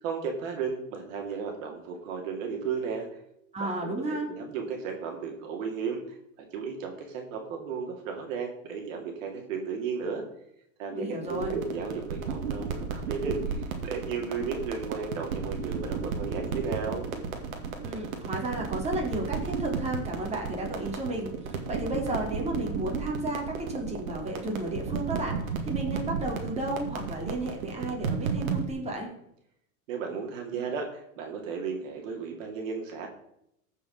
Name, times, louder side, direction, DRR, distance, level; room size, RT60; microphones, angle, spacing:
voice 1, 0.0-3.1 3.6-6.0 6.5-10.2 10.8-17.1 29.9-33.1, right 5 dB, 70° right, 2 dB, 2.5 m, -34 dB
voice 2, 3.5-4.3 10.9-11.6 17.8-25.4 25.6-29.1, right 1 dB, 15° right, -1 dB, 3.0 m, -33 dB
sound 1, 11.2-28.7, right 5 dB, 85° right, 2.1 m, -34 dB
15.5 x 5.5 x 5.4 m, 0.77 s
hypercardioid pair, 120°, 41 cm